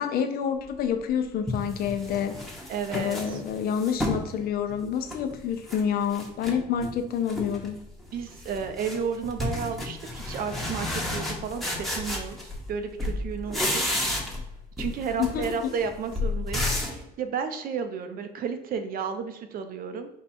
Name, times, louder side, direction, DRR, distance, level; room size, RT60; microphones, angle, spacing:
voice 1, 0.0-2.3 2.9-7.8 15.2-15.7, left 8 dB, 65° left, 7 dB, 0.6 m, -28 dB
sound 1, 0.8-0.9 1.5-4.3 4.7-5.8 6.1-6.9 7.3-7.7 8.0-12.7 13.0-14.5 14.8-17.0, left 1 dB, ahead, 0.9 m, -32 dB
voice 2, 2.7-3.4 8.1-13.8 14.8-20.1, right 6 dB, 60° right, 7 dB, 0.6 m, -32 dB
4.5 x 2.3 x 4.2 m, 0.89 s
cardioid pair, 110°, 17 cm